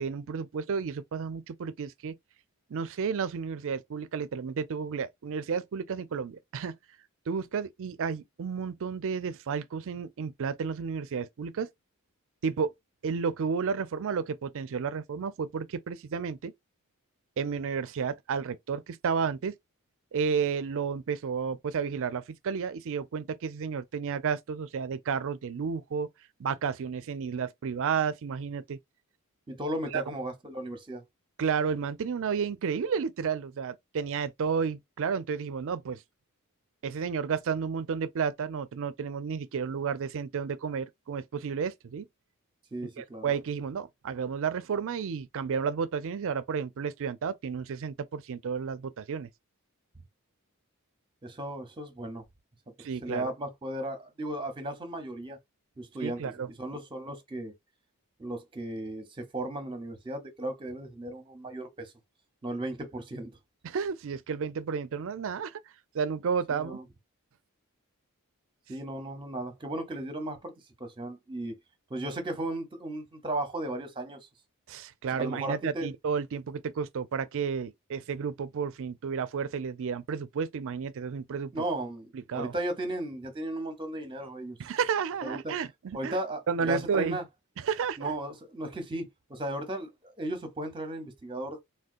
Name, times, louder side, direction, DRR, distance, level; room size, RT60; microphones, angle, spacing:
voice 1, 0.0-2.1 2.7-6.7 7.3-11.7 12.4-12.7 13.0-16.5 17.4-19.5 20.1-26.1 26.4-28.8 29.9-30.0 31.4-36.0 36.8-42.1 43.0-49.3 52.8-53.3 56.0-56.5 63.6-65.6 65.9-66.8 74.7-81.6 82.1-82.5 84.6-86.2 86.5-87.2 87.6-88.2, right 6 dB, 60° right, 0.4 m, -32 dB
voice 2, 29.5-31.0 42.7-43.3 51.2-52.2 53.0-55.4 55.8-56.3 56.6-57.5 58.2-61.9 62.4-63.4 66.5-66.8 68.7-70.5 70.8-71.6 71.9-74.3 75.1-75.9 81.5-84.6 85.2-85.5 85.9-87.2 88.0-91.6, right 1 dB, 20° right, 0.8 m, -35 dB
3.6 x 2.2 x 2.5 m
head